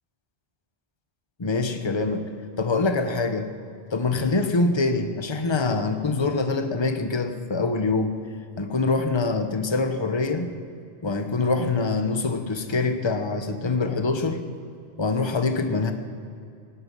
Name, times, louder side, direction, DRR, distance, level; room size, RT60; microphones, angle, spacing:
voice 1, 1.4-2.3 2.6-3.5 3.9-8.2 8.6-10.5 11.0-14.4 15.0-15.9, left 3 dB, 30° left, 7 dB, 1.0 m, -24 dB
17.0 x 8.7 x 9.4 m, 2.5 s
omnidirectional pair, 1.0 m